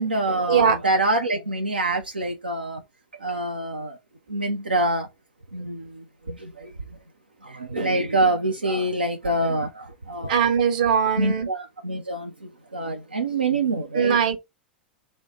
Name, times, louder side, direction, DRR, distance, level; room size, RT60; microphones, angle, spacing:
voice 1, 0.0-2.8 3.2-4.0 4.3-5.1 5.5-6.7 7.4-10.4 11.2-14.2, right 2 dB, 85° right, 0.4 m, -26 dB
voice 2, 10.3-11.5 13.9-14.4, right 7 dB, 60° right, 0.8 m, -20 dB
3.1 x 2.0 x 4.0 m
figure-of-eight pair, 90°, 5 cm